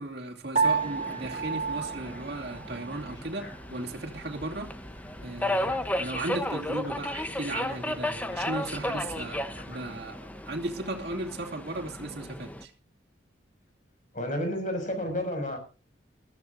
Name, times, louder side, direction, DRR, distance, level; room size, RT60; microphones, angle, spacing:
voice 1, 0.0-4.8 5.2-12.7, right 2 dB, 60° right, 2.7 m, -36 dB
Subway metro underground, 0.6-12.6, left 1 dB, 10° left, 0.9 m, -35 dB
Piano, 0.6-3.1, right 5 dB, 40° right, 3.0 m, -30 dB
sound 1, 1.0-9.8, left 1 dB, 80° left, 5.1 m, -48 dB
voice 2, 14.1-15.6, left 1 dB, 45° left, 6.4 m, -30 dB
21.0 x 14.0 x 2.7 m
head